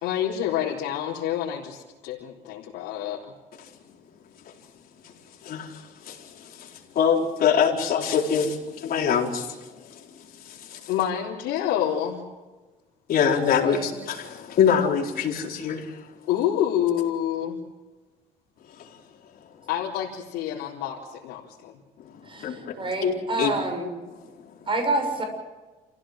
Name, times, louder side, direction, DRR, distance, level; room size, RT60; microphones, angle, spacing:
voice 1, 0.0-3.2 10.9-12.2 16.3-17.6 19.7-21.8, left 10 dB, 85° left, -6 dB, 4.1 m, -27 dB
voice 2, 5.4-10.9 13.1-16.1 18.7-19.0 22.0-23.5 23.8-24.7, left 7 dB, 60° left, 1 dB, 4.3 m, -26 dB
voice 3, 13.6-13.9 22.2-23.9 24.7-25.2, right 2 dB, 30° right, 5 dB, 7.1 m, -28 dB
28.5 x 16.0 x 7.7 m, 1.3 s
cardioid pair, 110°, 17 cm